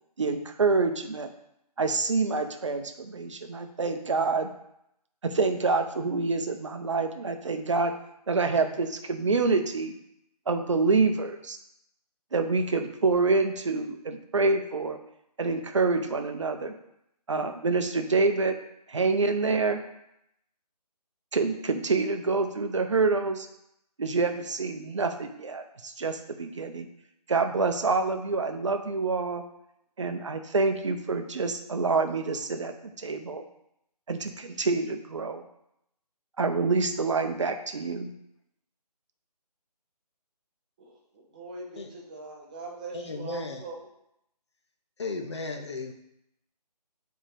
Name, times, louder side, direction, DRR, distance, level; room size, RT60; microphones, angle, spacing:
voice 1, 0.2-1.3 1.8-4.5 5.2-7.9 8.3-10.0 10.5-11.6 12.3-15.0 15.4-16.7 17.3-18.5 18.9-19.8 21.3-23.5 24.0-26.9 27.3-29.4 30.0-33.4 34.1-35.4 36.4-38.1, right 4 dB, 45° right, 7 dB, 0.7 m, -27 dB
voice 2, 40.8-43.9, right 3 dB, 10° right, -2 dB, 0.6 m, -42 dB
voice 3, 42.9-43.6 45.0-45.9, left 3 dB, 45° left, 4 dB, 0.8 m, -34 dB
7.2 x 4.4 x 3.3 m, 0.79 s
figure-of-eight pair, 150°, 21 cm